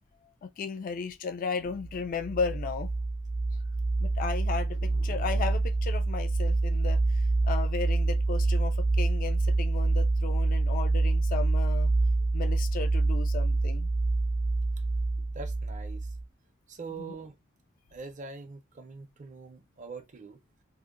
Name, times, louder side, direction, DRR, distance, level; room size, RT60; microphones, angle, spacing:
voice 1, 0.4-2.9 4.0-11.9 12.3-13.9 17.0-17.1, left 5 dB, 45° left, 0.3 m, -35 dB
sound 1, 1.8-16.2, right 2 dB, 85° left, 1.0 m, -27 dB
voice 2, 15.3-16.1 16.7-17.4 17.9-20.4, right 4 dB, 40° right, 0.5 m, -43 dB
2.7 x 2.1 x 2.4 m
head